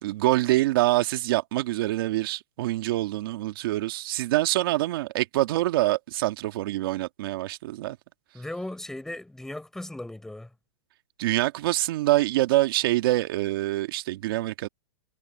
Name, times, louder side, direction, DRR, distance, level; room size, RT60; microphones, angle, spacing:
voice 1, 0.0-8.0 11.2-14.7, right 17 dB, 55° right, 1.9 m, -25 dB
voice 2, 8.3-10.5, left 1 dB, 5° left, 7.4 m, -37 dB
hypercardioid pair, 150°, 14 cm